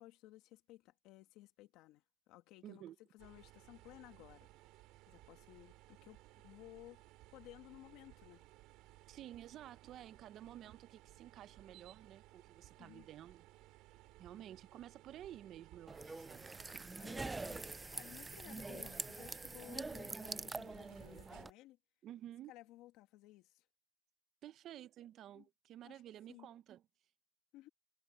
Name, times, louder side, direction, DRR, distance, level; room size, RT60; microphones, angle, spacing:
voice 1, 0.0-2.9 3.1-4.5 5.1-7.0 7.3-8.5 12.8-13.1 17.0-21.8 22.5-23.6 25.3-25.5 25.8-26.0 26.3-26.5 27.5-27.7, left 16 dB, 80° left, 2.0 m, -58 dB
voice 2, 2.6-3.0 9.1-13.5 14.2-16.9 22.0-22.5 24.4-26.8, right 12 dB, 60° right, 0.7 m, -53 dB
sound 1, 3.2-21.5, right 18 dB, 80° right, 5.0 m, -61 dB
sound 2, 15.9-21.5, right 3 dB, 15° right, 0.3 m, -45 dB
cardioid pair, 110°, 0 cm